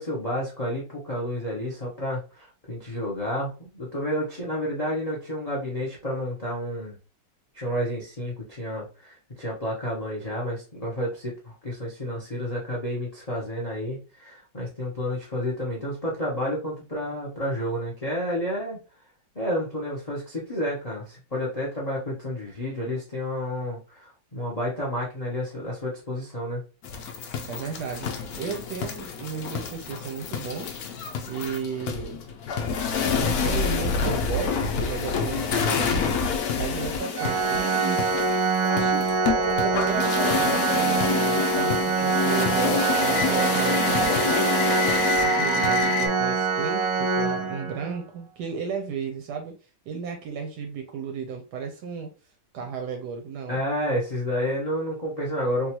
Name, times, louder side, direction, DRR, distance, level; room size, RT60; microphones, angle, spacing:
voice 1, 0.0-7.0 7.5-18.8 19.3-26.6 53.5-55.7, equal, 65° left, -3 dB, 0.3 m, -30 dB
sound 1, 26.8-46.1, left 5 dB, 80° left, 0.8 m, -27 dB
voice 2, 27.4-30.8 31.3-32.2 33.1-36.2 36.6-38.1 38.6-44.7 45.2-49.6 49.9-52.1 52.5-53.6, right 6 dB, 70° right, 4 dB, 1.0 m, -34 dB
Organ, 37.2-48.0, right 4 dB, 85° right, 1.4 m, -24 dB
3.8 x 2.4 x 2.8 m, 0.33 s
omnidirectional pair, 2.2 m